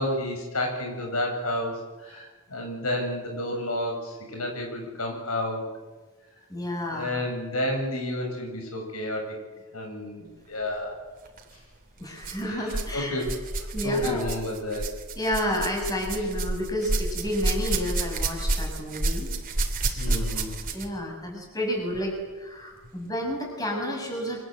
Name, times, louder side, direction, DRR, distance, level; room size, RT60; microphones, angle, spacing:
voice 1, 0.0-5.6 6.9-9.4 9.7-11.0 12.4-14.9 20.0-20.6, left 1 dB, 85° left, 2 dB, 7.9 m, -31 dB
voice 2, 6.5-7.1 12.0-13.2 13.7-14.3 15.2-19.3 19.9-20.4 20.7-24.4, equal, 15° left, 1 dB, 7.4 m, -30 dB
sound 1, 11.3-11.4 12.2-12.9 13.2-21.0 21.9-22.0 22.8-22.9, right 2 dB, 40° right, 3.1 m, -29 dB
28.0 x 25.5 x 8.0 m, 1.2 s
head